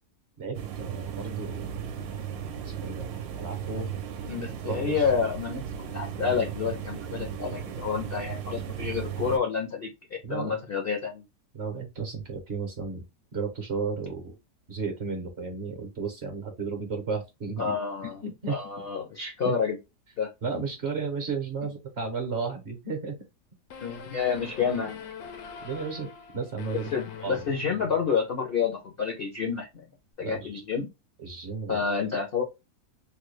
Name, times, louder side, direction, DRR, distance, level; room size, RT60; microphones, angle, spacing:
voice 1, 0.4-1.7 2.8-3.1 3.4-3.9 4.7-5.1 10.2-10.6 11.5-13.0 13.3-14.3 14.7-17.7 18.0-18.6 19.4-19.6 20.4-23.2 25.6-26.9 27.2-27.4 30.2-30.6 31.2-31.8, right 4 dB, 50° right, 0.9 m, -33 dB
sound 1, 0.5-9.4, right 8 dB, 70° right, 1.1 m, -36 dB
voice 2, 4.3-11.2 17.6-18.2 18.5-19.8 20.2-20.3 23.8-25.0 26.9-29.8 30.2-30.9 31.7-32.4, left 6 dB, 55° left, 0.6 m, -29 dB
sound 2, 23.7-28.3, left 7 dB, 75° left, 1.1 m, -43 dB
3.3 x 2.2 x 3.1 m
omnidirectional pair, 1.8 m